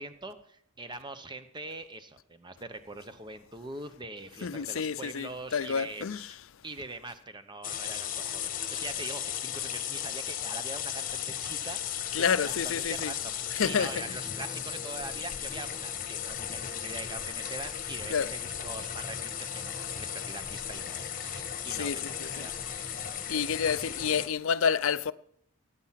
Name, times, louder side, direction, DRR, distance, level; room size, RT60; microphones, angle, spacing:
voice 1, 0.0-6.4 6.6-11.8 12.2-23.0, right 2 dB, 20° right, 0.9 m, -43 dB
voice 2, 4.4-6.3 12.1-13.1 13.5-13.9 18.1-18.3 21.7-22.5 23.3-25.1, left 6 dB, 60° left, 0.5 m, -29 dB
sound 1, 7.6-24.3, left 9 dB, 40° left, 1.3 m, -36 dB
18.0 x 9.7 x 5.8 m
head